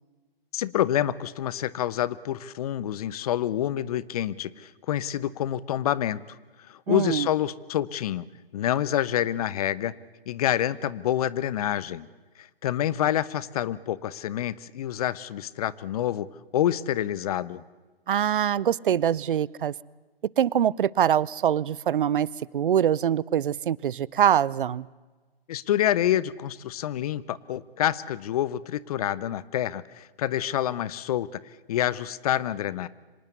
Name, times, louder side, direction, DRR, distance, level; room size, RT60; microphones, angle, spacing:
voice 1, 0.5-6.4 6.7-8.3 8.5-9.9 10.3-12.1 12.4-16.3 16.5-17.6 25.5-31.3 31.7-32.9, left 11 dB, 40° left, 19 dB, 0.9 m, -27 dB
voice 2, 6.9-7.3 18.1-19.7 20.4-22.3 22.5-24.9, right 9 dB, 60° right, 24 dB, 0.7 m, -24 dB
26.0 x 19.0 x 8.2 m, 1.3 s
figure-of-eight pair, 135°, 30 cm